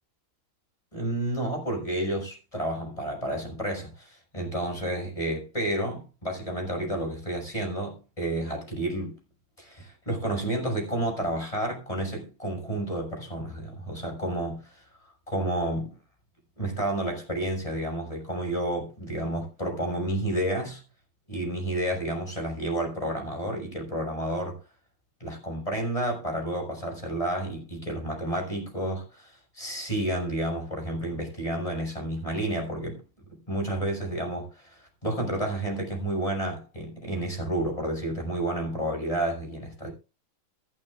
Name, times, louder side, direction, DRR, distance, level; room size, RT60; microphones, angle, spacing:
voice 1, 0.9-9.2 9.6-14.8 15.3-16.0 16.6-20.8 21.3-24.6 25.2-33.0 33.3-39.9, right 1 dB, 15° left, 6.2 m, -30 dB
25.0 x 8.6 x 2.5 m
omnidirectional pair, 2.4 m